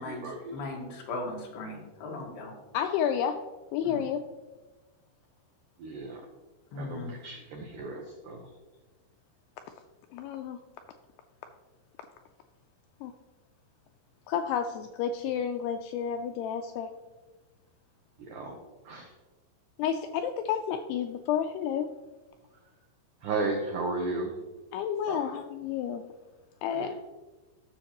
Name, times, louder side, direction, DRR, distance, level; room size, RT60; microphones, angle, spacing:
voice 1, 0.0-0.6 5.8-6.2 6.8-8.5 18.2-18.6 18.8-19.1 23.2-24.3 25.1-25.3 26.7-27.0, right 3 dB, 90° right, 1 dB, 1.8 m, -35 dB
voice 2, 0.5-2.5 3.8-4.0 6.7-7.1, left 2 dB, 65° left, -1 dB, 3.4 m, -38 dB
voice 3, 2.7-3.4 3.7-4.2 10.1-10.6 13.0-13.1 14.3-16.9 19.8-21.9 24.7-26.0 26.6-27.0, left 8 dB, 85° left, 6 dB, 2.3 m, -30 dB
14.5 x 6.4 x 3.0 m, 1.2 s
omnidirectional pair, 5.1 m